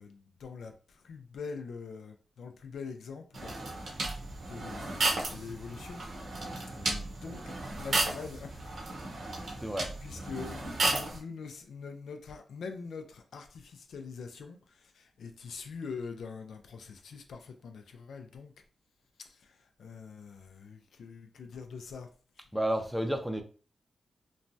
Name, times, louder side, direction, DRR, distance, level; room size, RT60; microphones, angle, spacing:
voice 1, 0.0-4.2 4.5-6.0 6.7-8.8 9.4-18.5 19.3-22.1, left 5 dB, 85° left, 0.3 m, -44 dB
sound 1, 3.3-11.2, right 2 dB, 65° right, 0.8 m, -34 dB
voice 2, 9.6-9.9 22.5-23.4, right 1 dB, 5° right, 0.5 m, -32 dB
3.0 x 2.2 x 2.6 m
cardioid pair, 90°, 0 cm